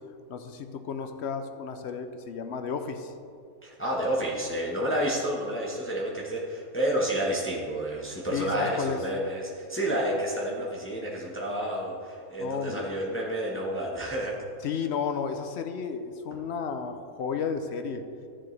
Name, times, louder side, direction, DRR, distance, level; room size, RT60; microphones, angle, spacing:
voice 1, 0.3-3.1 8.3-9.0 12.4-12.9 14.6-18.0, left 6 dB, 60° left, 7 dB, 0.8 m, -33 dB
voice 2, 3.6-14.3, right 1 dB, 10° left, -3 dB, 1.2 m, -30 dB
13.0 x 7.5 x 3.3 m, 2.4 s
omnidirectional pair, 1.5 m